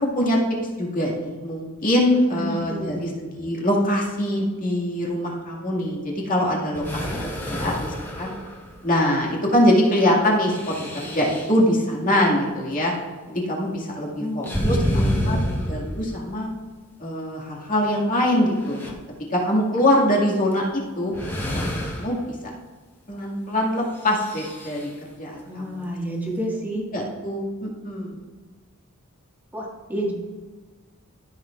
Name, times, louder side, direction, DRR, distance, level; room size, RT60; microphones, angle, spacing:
voice 1, 0.0-0.4 0.8-7.0 7.5-8.3 8.8-12.9 13.3-15.4 15.7-16.5 17.0-19.0 19.3-21.1 21.5-22.4 23.1-24.9 25.2-25.9 26.9-28.2, left 1 dB, 40° left, -2 dB, 2.1 m, -23 dB
voice 2, 2.3-3.0 6.8-7.3 14.2-15.6 25.5-26.9 29.5-30.1, equal, 10° right, -3 dB, 1.8 m, -30 dB
sound 1, 6.7-9.0 10.4-11.6 14.4-16.4 17.7-17.8 18.3-18.9 20.5-20.7 21.1-22.3 24.0-24.9, equal, 10° left, 1.3 m, -28 dB
14.0 x 6.7 x 2.5 m, 1.4 s
head